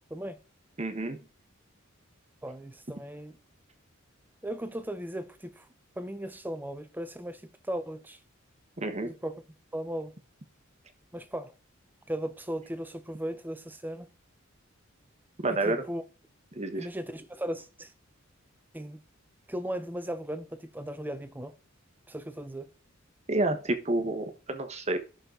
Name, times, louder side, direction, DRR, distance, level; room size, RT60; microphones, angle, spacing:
voice 1, 0.8-1.2 8.8-9.1 15.4-15.8 16.6-16.9 23.3-25.0, right 2 dB, 35° right, 1.2 m, -29 dB
voice 2, 2.4-3.4 4.4-5.7 6.0-8.2 9.0-9.4 9.7-10.1 11.1-11.5 12.1-14.1 15.5-16.0 16.7-17.9 18.7-19.0 19.5-21.5 22.1-22.7, right 1 dB, 10° right, 0.7 m, -37 dB
11.5 x 6.4 x 3.9 m
head